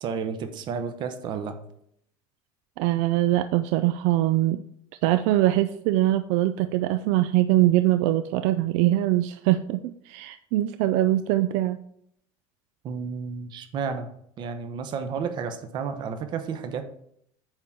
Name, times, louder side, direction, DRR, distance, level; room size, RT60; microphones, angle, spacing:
voice 1, 0.0-1.6 12.8-14.1 14.4-16.8, right 6 dB, 40° right, 8 dB, 0.8 m, -31 dB
voice 2, 2.8-4.6 5.0-11.8, right 14 dB, 70° right, 10 dB, 0.4 m, -22 dB
8.8 x 3.7 x 5.7 m, 0.70 s
cardioid pair, 160°, 12 cm